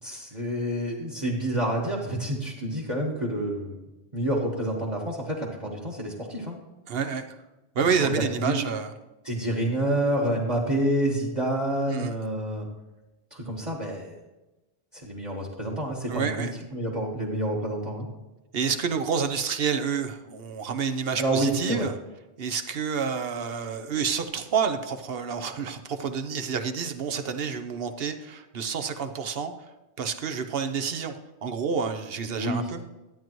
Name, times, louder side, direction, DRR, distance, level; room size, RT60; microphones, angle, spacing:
voice 1, 0.0-3.8 4.1-6.6 7.9-8.6 9.2-12.7 13.3-14.1 14.9-18.1 21.2-21.9 32.3-32.7, right 1 dB, 30° right, -1 dB, 1.4 m, -28 dB
voice 2, 6.9-7.2 7.7-8.9 11.9-12.1 16.1-16.5 18.5-21.9 22.4-29.5 30.0-31.1 31.4-32.8, right 6 dB, 60° right, 8 dB, 1.0 m, -29 dB
12.5 x 9.1 x 3.1 m, 1.1 s
omnidirectional pair, 1.1 m